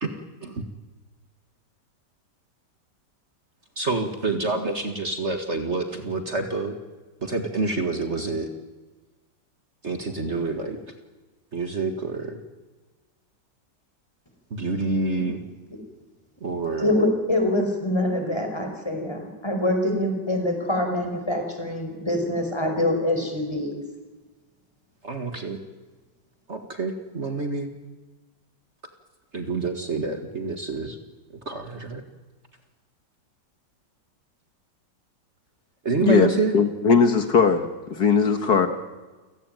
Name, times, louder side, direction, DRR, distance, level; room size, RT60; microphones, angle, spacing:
voice 1, 0.0-0.6 3.8-6.8 7.2-8.5 9.8-10.8 11.5-12.4 14.5-15.4 16.4-17.0 25.0-25.6 26.5-27.7 29.3-31.0 31.3-32.0 35.8-36.5, right 3 dB, 40° right, 6 dB, 2.1 m, -27 dB
voice 2, 16.8-23.8, left 1 dB, 15° left, 4 dB, 5.2 m, -25 dB
voice 3, 36.5-38.7, left 5 dB, 65° left, 8 dB, 2.0 m, -19 dB
29.0 x 17.5 x 9.2 m, 1.3 s
omnidirectional pair, 1.9 m